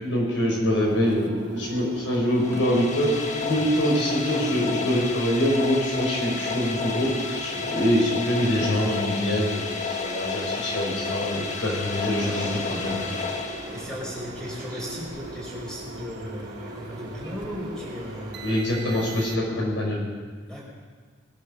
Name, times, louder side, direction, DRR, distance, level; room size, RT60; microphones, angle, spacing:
voice 1, 0.0-13.0 18.4-20.0, equal, 90° left, -2 dB, 5.6 m, -24 dB
sound 1, 0.7-19.7, right 1 dB, 65° right, 1.2 m, -41 dB
sound 2, 2.3-14.2, left 4 dB, 40° left, 1.4 m, -31 dB
Calm Street, 11.7-18.6, right 1 dB, 20° right, 4.0 m, -41 dB
voice 2, 13.7-18.5 20.4-20.6, equal, 5° left, -4 dB, 5.2 m, -36 dB
20.5 x 10.0 x 6.6 m, 1.5 s
head